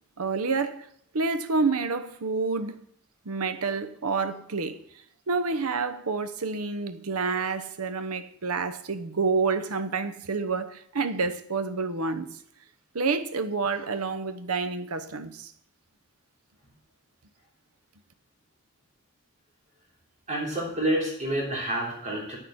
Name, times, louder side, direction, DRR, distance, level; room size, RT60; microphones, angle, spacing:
voice 1, 0.2-2.8 3.2-4.8 5.3-12.3 12.9-15.5, right 4 dB, 85° right, 0.9 m, -28 dB
voice 2, 20.3-22.4, right 1 dB, 35° right, 3.4 m, -28 dB
9.9 x 6.6 x 7.7 m
head